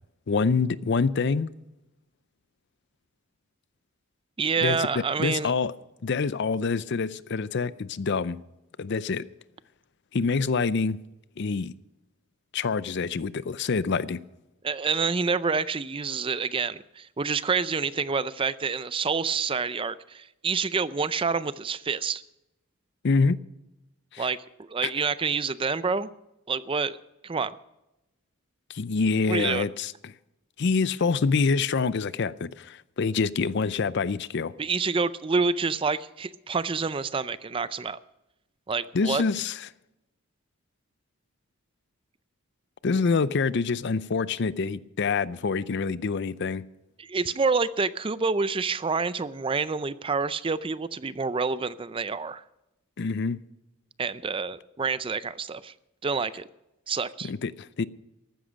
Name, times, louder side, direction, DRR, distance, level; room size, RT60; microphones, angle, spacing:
voice 1, 0.3-1.5 4.6-5.7 6.0-8.4 8.8-9.3 10.1-11.0 11.4-11.7 12.5-14.2 23.0-23.4 24.1-24.3 24.8-24.9 28.7-30.1 30.6-34.5 38.9-39.7 42.8-46.6 53.0-53.4 57.2-57.8, left 4 dB, 55° left, 0.5 m, -26 dB
voice 2, 4.4-5.5 14.6-22.2 24.2-26.1 26.5-27.0 27.2-27.5 29.3-29.7 34.6-38.0 38.7-39.2 47.0-52.4 54.0-55.7 56.0-56.5 56.9-57.3, right 4 dB, 25° right, 0.4 m, -28 dB
14.5 x 13.0 x 5.2 m
head